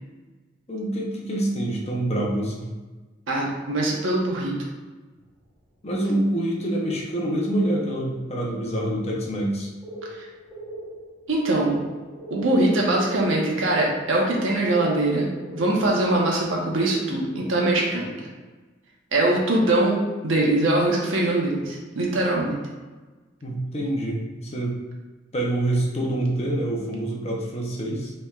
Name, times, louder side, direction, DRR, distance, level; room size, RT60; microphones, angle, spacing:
voice 1, 0.7-2.7 5.8-9.7 23.4-24.8 25.3-28.1, right 1 dB, 35° left, -2 dB, 0.8 m, -26 dB
voice 2, 3.3-4.6 10.1-10.2 11.3-11.8 12.3-18.1 19.1-22.6, right 2 dB, 85° right, -2 dB, 1.1 m, -22 dB
sound 1, 5.2-6.1 6.5-6.9 7.4-7.7 8.0-8.1 8.3-8.5 9.0-16.8, right 1 dB, 10° left, 1.1 m, -42 dB
5.5 x 3.4 x 2.5 m, 1.3 s
head